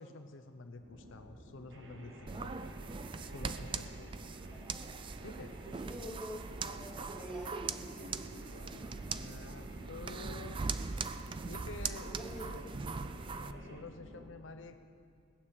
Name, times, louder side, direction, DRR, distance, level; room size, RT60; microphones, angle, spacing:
voice 1, 0.0-2.7 3.3-4.1 5.2-5.6 9.0-10.6 11.1-12.7 13.3-14.8, left 3 dB, 70° left, 8 dB, 0.7 m, -49 dB
sound 1, 0.8-14.2, equal, 80° right, 3.4 m, -52 dB
sound 2, 1.7-13.8, right 1 dB, 60° right, 1.3 m, -57 dB
sound 3, 2.3-13.5, right 4 dB, 25° right, 0.3 m, -41 dB
voice 2, 5.6-8.6 12.0-12.5, equal, 5° right, -6 dB, 3.1 m, -47 dB
19.5 x 6.8 x 8.6 m, 2.3 s
head